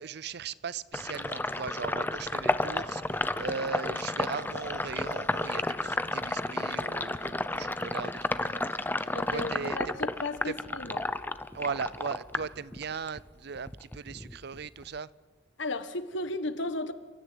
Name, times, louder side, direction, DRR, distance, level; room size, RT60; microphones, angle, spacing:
voice 1, 0.0-8.8 9.3-10.0 10.4-10.6 11.5-15.1, right 5 dB, 60° right, 0.6 m, -38 dB
Sink (filling or washing), 0.9-13.2 13.5-15.0, left 2 dB, 10° left, 0.7 m, -32 dB
voice 2, 9.1-11.1 15.6-16.9, left 2 dB, 75° left, 1.5 m, -34 dB
29.0 x 13.5 x 9.7 m
head